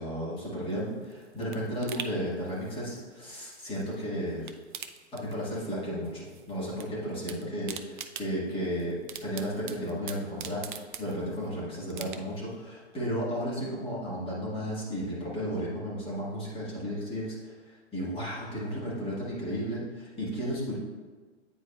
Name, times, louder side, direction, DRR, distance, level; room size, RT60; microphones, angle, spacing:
voice 1, 0.0-4.5 5.1-10.6 11.0-17.5 17.9-20.8, equal, 15° left, -6 dB, 1.7 m, -33 dB
sound 1, 0.7-4.0 4.3-5.8 6.0-6.9 7.1-11.5 11.9-12.5 12.9-13.0, right 8 dB, 45° right, 0.5 m, -43 dB
9.1 x 4.5 x 2.4 m, 1.4 s
figure-of-eight pair, 115°, 35 cm